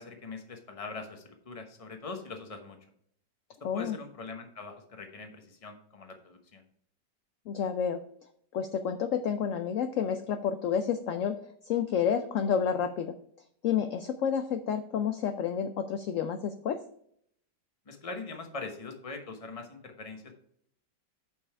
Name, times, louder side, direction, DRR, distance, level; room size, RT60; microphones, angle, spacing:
voice 1, 0.0-2.8 3.7-6.6 17.9-20.3, left 3 dB, 25° left, 5 dB, 0.9 m, -42 dB
voice 2, 3.6-4.0 7.5-8.0 8.5-11.4 11.7-13.1 13.6-16.8, left 7 dB, 70° left, 8 dB, 0.7 m, -30 dB
7.6 x 5.5 x 4.6 m, 0.67 s
omnidirectional pair, 1.9 m